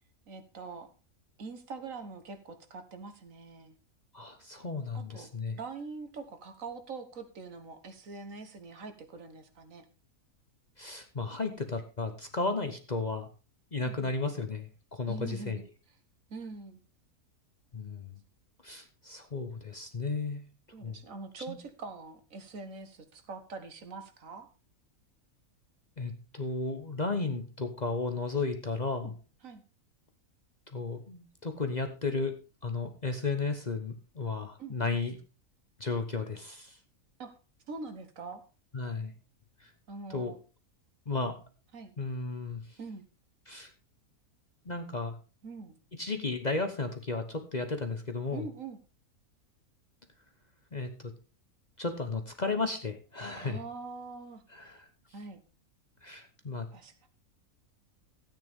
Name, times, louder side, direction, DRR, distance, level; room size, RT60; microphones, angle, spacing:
voice 1, 0.3-0.9 1.4-3.7 4.9-9.8 13.8-14.1 15.1-15.7 16.3-16.8 20.7-24.5 28.8-29.1 29.4-29.6 34.6-35.0 37.2-37.4 37.7-38.4 39.9-40.4 41.7-41.9 42.8-43.0 45.4-45.8 48.3-48.8 53.4-54.4 55.1-55.4 56.7-56.9, right 4 dB, 65° right, 8 dB, 1.7 m, -44 dB
voice 2, 4.1-5.6 10.8-13.3 13.7-15.6 17.7-18.2 18.6-20.5 20.8-21.0 21.5-21.6 26.0-29.2 30.7-32.4 32.6-35.2 35.8-36.8 38.7-39.1 39.6-39.7 40.1-40.3 41.1-41.4 42.0-42.8 43.5-43.7 44.6-45.2 45.9-48.4 50.7-51.1 51.8-53.6 54.5-54.9 56.0-56.7, left 3 dB, 35° left, 6 dB, 0.9 m, -34 dB
14.0 x 9.0 x 3.6 m, 0.32 s
omnidirectional pair, 1.5 m